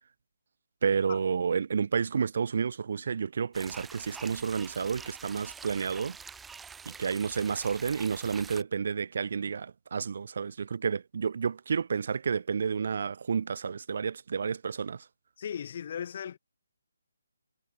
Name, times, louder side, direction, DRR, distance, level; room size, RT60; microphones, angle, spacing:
voice 1, 0.8-6.2 6.8-15.0, right 6 dB, 50° right, 1.3 m, -30 dB
sound 1, 3.5-8.6, right 6 dB, 5° right, 2.0 m, -46 dB
voice 2, 15.4-16.4, left 8 dB, 40° left, 0.9 m, -37 dB
hypercardioid pair, 170°, 0 cm